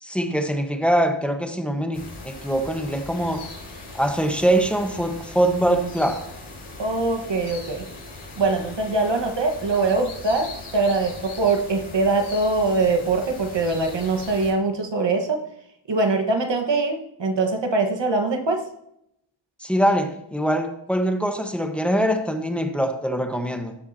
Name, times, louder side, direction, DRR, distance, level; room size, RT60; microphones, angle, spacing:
voice 1, 0.0-3.4 3.9-6.3 19.6-23.8, right 1 dB, ahead, 4 dB, 1.2 m, -23 dB
sound 1, 1.9-14.5, left 2 dB, 85° left, 4.2 m, -40 dB
voice 2, 6.8-7.8 8.4-15.4 15.9-18.7, right 3 dB, 60° right, 4 dB, 1.5 m, -23 dB
18.5 x 7.2 x 2.9 m, 0.79 s
wide cardioid pair, 95°, 48 cm